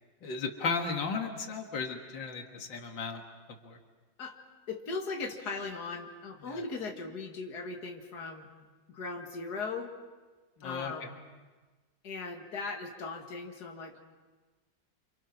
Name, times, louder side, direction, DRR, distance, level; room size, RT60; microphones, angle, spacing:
voice 1, 0.2-3.2 3.6-3.8 6.4-6.6 10.6-10.9, left 4 dB, 90° left, 4 dB, 2.5 m, -35 dB
voice 2, 4.7-8.5 8.9-9.9 10.6-11.2 12.0-14.0, left 4 dB, 60° left, 3 dB, 2.4 m, -38 dB
28.0 x 27.0 x 6.0 m, 1.3 s
omnidirectional pair, 2.0 m